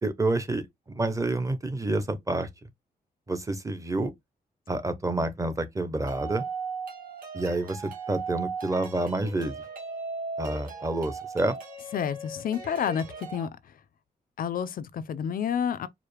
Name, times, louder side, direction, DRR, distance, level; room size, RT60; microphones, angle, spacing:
voice 1, 0.0-2.5 3.3-4.1 4.7-6.4 7.3-9.6 10.4-11.6, right 2 dB, 20° right, 0.6 m, -28 dB
sound 1, 6.1-13.5, right 4 dB, 60° right, 1.7 m, -37 dB
voice 2, 11.9-13.7 14.4-15.9, left 8 dB, 60° left, 0.4 m, -30 dB
4.7 x 2.0 x 3.2 m
wide cardioid pair, 125°, 16 cm